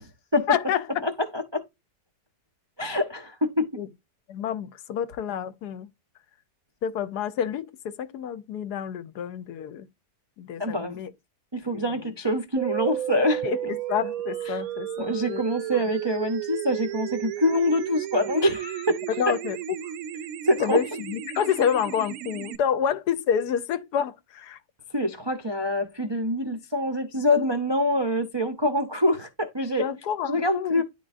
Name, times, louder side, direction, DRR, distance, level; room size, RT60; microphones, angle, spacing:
voice 1, 0.5-1.1 3.8-3.9 4.3-5.9 6.8-9.9 10.4-11.1 11.7-12.1 13.4-15.4 19.2-19.6 19.8-19.9 20.6-24.6 29.8-30.8, left 8 dB, 75° left, 1.1 m, -28 dB
voice 2, 1.3-1.6 2.8-3.8 10.6-11.0 11.5-13.4 14.5-14.6 15.0-19.0 20.4-20.8 24.9-29.8 30.3-30.8, left 1 dB, 35° right, 0.4 m, -25 dB
sound 1, 12.6-22.6, right 12 dB, 65° right, 0.9 m, -33 dB
10.5 x 3.8 x 2.5 m
omnidirectional pair, 1.9 m